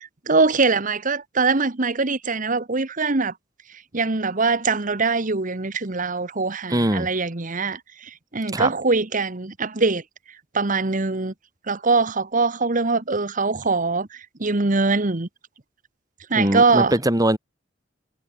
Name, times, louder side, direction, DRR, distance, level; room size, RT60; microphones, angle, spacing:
voice 1, 0.0-3.3 3.9-10.0 10.5-11.3 11.7-15.3 16.3-16.9, right 3 dB, 45° right, 1.3 m, -22 dB
voice 2, 6.7-7.1 8.5-8.7 16.4-17.4, right 1 dB, 20° right, 3.4 m, -21 dB
head